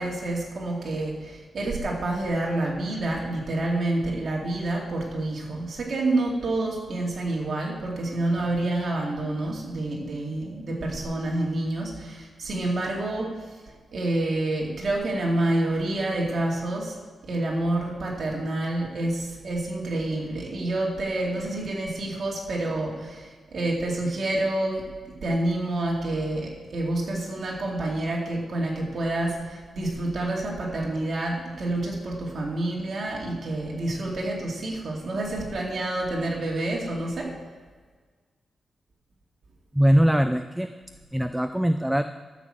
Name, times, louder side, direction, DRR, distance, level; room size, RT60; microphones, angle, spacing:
voice 1, 0.0-13.4 13.9-17.0 17.2-24.9 25.2-37.3, right 2 dB, 45° right, -2 dB, 2.5 m, -28 dB
voice 2, 39.7-40.7 41.1-42.0, equal, 5° right, 9 dB, 0.3 m, -21 dB
12.5 x 6.2 x 7.5 m, 1.4 s
wide cardioid pair, 175°, 0 cm